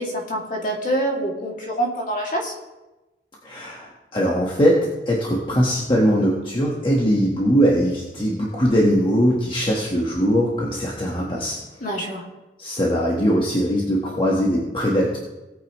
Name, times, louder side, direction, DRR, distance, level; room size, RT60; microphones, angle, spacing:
voice 1, 0.0-2.5 11.8-12.2, right 1 dB, 50° left, -1 dB, 2.4 m, -26 dB
voice 2, 3.4-11.6 12.6-15.2, equal, 30° left, -3 dB, 1.3 m, -21 dB
18.0 x 8.6 x 3.1 m, 1.0 s
head